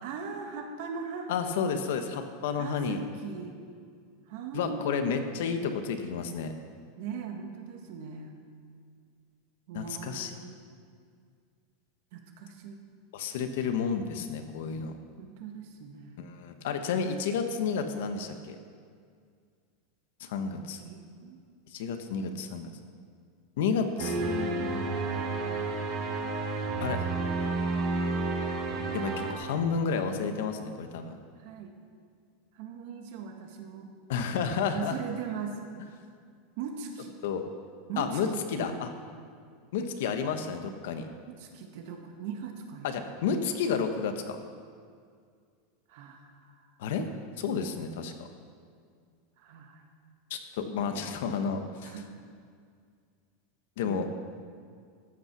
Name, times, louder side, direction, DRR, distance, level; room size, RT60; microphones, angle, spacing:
voice 1, 0.0-1.3 2.5-3.6 4.3-5.3 7.0-8.3 9.7-10.6 12.1-12.8 15.2-16.2 20.8-21.4 31.4-31.7 32.5-33.9 34.7-35.6 36.6-37.1 37.9-38.8 41.3-43.1 45.9-46.8 49.4-49.8 51.8-52.1 53.8-54.1, right 6 dB, 55° right, 3 dB, 1.7 m, -40 dB
voice 2, 1.3-3.0 4.5-6.5 9.7-10.4 13.1-15.0 16.2-18.6 20.2-20.8 21.7-22.7 23.6-25.1 26.8-27.0 28.9-31.1 34.1-35.0 37.2-37.4 38.0-38.9 39.7-41.1 42.8-44.4 46.8-47.1 47.4-48.3 50.3-51.9 53.8-54.1, left 6 dB, 70° left, 7 dB, 1.2 m, -31 dB
sound 1, 24.0-29.3, right 3 dB, 40° right, 1.6 m, -30 dB
14.0 x 8.8 x 6.1 m, 2.1 s
supercardioid pair, 170°, 0 cm